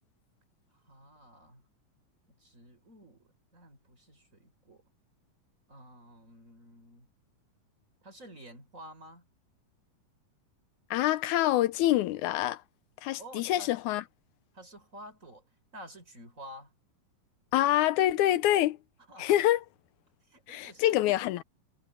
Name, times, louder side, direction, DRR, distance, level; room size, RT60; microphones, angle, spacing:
voice 1, 0.8-1.6 2.3-4.8 5.7-7.1 8.0-9.3 13.2-13.7 14.5-15.4 15.7-16.7 19.1-19.4 20.3-21.0, equal, 20° right, 6.4 m, -50 dB
voice 2, 10.9-12.6 13.0-14.0 17.5-18.8 19.2-19.6 20.5-21.4, left 14 dB, 80° left, 1.8 m, -26 dB
omnidirectional pair, 3.9 m